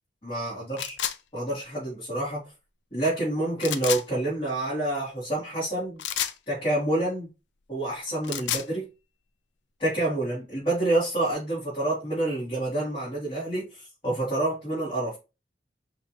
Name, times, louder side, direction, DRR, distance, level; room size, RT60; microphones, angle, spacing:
voice 1, 0.2-0.9 1.3-2.4 2.9-6.0 6.5-7.3 7.7-8.9 9.8-15.2, right 1 dB, 30° left, 2.8 m, -28 dB
sound 1, 0.8-1.2 3.6-4.0 6.0-6.4 8.1-8.7, left 10 dB, 90° left, 0.5 m, -29 dB
5.7 x 3.0 x 3.1 m
head